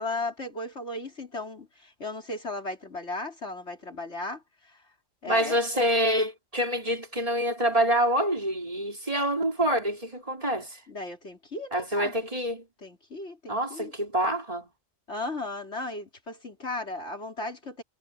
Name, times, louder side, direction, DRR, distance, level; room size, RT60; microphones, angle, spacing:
voice 1, 0.0-4.4 5.2-5.6 10.9-12.1 12.8-13.9 15.1-17.8, left 2 dB, 80° left, 4.5 m, -36 dB
voice 2, 5.3-10.8 11.7-12.6 13.5-14.7, equal, 30° right, 4.5 m, -26 dB
omnidirectional pair, 1.1 m